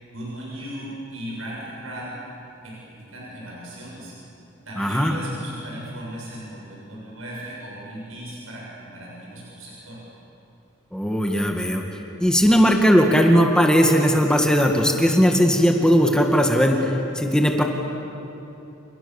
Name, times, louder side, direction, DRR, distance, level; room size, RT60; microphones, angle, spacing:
voice 1, 0.1-2.2 2.6-4.1 4.7-10.0, right 1 dB, 80° right, -4 dB, 7.1 m, -37 dB
voice 2, 4.8-5.2 10.9-11.8 12.2-17.6, equal, 5° left, 2 dB, 2.0 m, -18 dB
29.0 x 28.5 x 7.3 m, 2.9 s
head